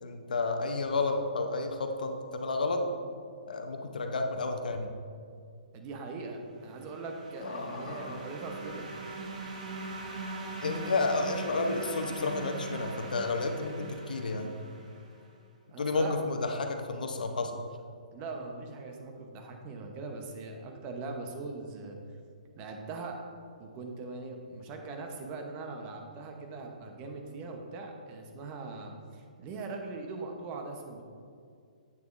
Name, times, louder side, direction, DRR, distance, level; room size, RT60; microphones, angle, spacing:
voice 1, 0.0-2.8 3.5-4.9 7.4-8.3 10.6-14.5 15.8-17.5, left 3 dB, 80° left, 5 dB, 0.8 m, -31 dB
voice 2, 5.7-8.9 15.7-16.1 18.1-22.0 22.6-23.2 23.6-31.0, right 3 dB, 30° right, 3 dB, 0.9 m, -41 dB
sound 1, 6.6-15.2, right 3 dB, 60° right, 1.3 m, -41 dB
8.7 x 6.6 x 2.6 m, 2.3 s
hypercardioid pair, 140°, 4 cm